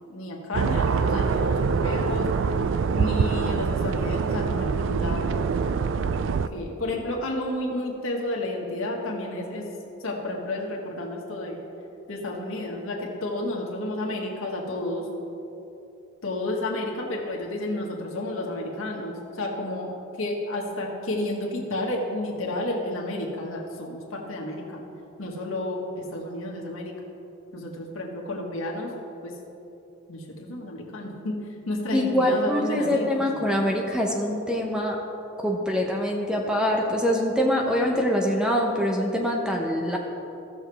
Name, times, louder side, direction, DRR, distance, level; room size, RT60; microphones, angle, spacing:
voice 1, 0.1-2.3 3.0-5.4 6.3-9.7 10.0-11.6 12.1-15.1 16.2-19.9 20.2-24.8 25.2-27.0 27.5-28.9 29.2-29.3 30.1-31.4 31.7-33.2, left 1 dB, 85° left, -1 dB, 1.5 m, -31 dB
sound 1, 0.5-6.5, right 5 dB, 65° right, 0.3 m, -24 dB
voice 2, 31.9-35.0 35.4-40.0, equal, 5° right, 0 dB, 0.8 m, -24 dB
15.5 x 6.5 x 3.4 m, 2.9 s
head